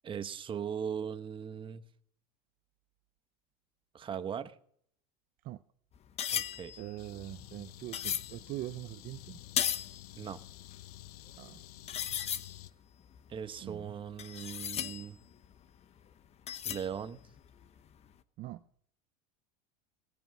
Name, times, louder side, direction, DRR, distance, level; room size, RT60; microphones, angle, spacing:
voice 1, 0.0-1.8 3.9-4.6 6.3-6.8 10.2-10.4 13.3-15.2 16.6-17.2, right 8 dB, 25° right, 1.0 m, -39 dB
sound 1, 5.9-8.4 9.0-10.0 10.3-10.4 11.1-11.2 11.3-11.5 11.9-12.6 13.1-15.5 16.5-17.1 17.4-17.6, left 9 dB, 35° left, 0.9 m, -36 dB
voice 2, 6.8-9.4 11.4-11.6 13.6-13.9 18.4-18.6, right 15 dB, 45° right, 0.6 m, -42 dB
sound 2, 7.0-12.7, left 14 dB, 90° left, 0.8 m, -51 dB
19.0 x 9.1 x 6.0 m
supercardioid pair, 120°, 19 cm